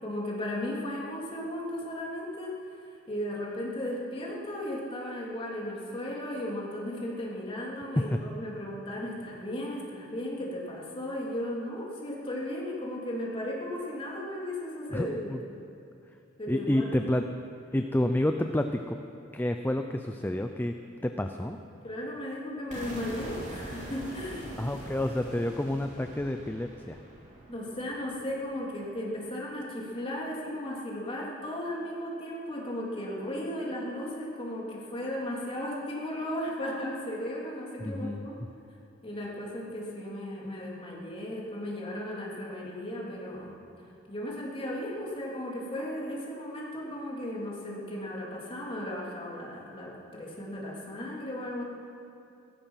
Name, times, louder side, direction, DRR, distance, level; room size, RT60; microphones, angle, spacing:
voice 1, 0.0-2.5 3.1-15.3 16.4-16.9 17.2-17.3 21.8-24.7 27.5-38.3 39.0-43.5 44.1-51.6, left 1 dB, 30° left, -4 dB, 3.2 m, -35 dB
voice 2, 14.9-15.4 16.5-17.2 17.7-19.0 19.3-20.7 21.0-21.6 24.6-27.0 37.8-38.3, left 1 dB, 10° left, 6 dB, 0.5 m, -29 dB
sound 1, 22.7-28.6, right 1 dB, 40° right, 3.5 m, -44 dB
16.5 x 14.5 x 5.8 m, 2.6 s
head